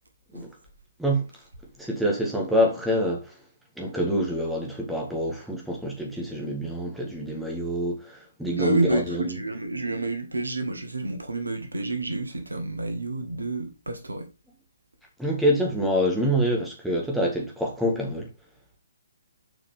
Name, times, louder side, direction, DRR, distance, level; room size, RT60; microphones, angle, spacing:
voice 1, 1.8-3.3 3.8-9.3 15.2-18.3, equal, ahead, 1.8 m, -26 dB
voice 2, 8.6-14.3, right 2 dB, 75° right, 1.7 m, -29 dB
7.4 x 5.0 x 3.5 m
figure-of-eight pair, 130°, 0 cm